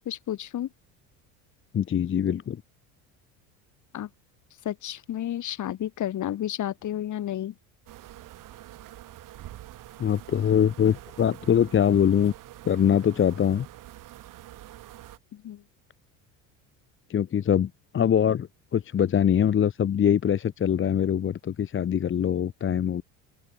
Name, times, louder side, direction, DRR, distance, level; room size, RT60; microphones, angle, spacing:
voice 1, 0.1-0.7 3.9-4.1 4.6-7.5 15.3-15.6, left 11 dB, 45° left, 2.0 m, -31 dB
voice 2, 1.7-2.6 10.0-12.3 12.7-13.7 17.1-23.0, left 9 dB, 30° left, 0.9 m, -23 dB
sound 1, 7.9-15.2, right 14 dB, 50° right, 1.3 m, -46 dB
open air
hypercardioid pair, 80°, 41 cm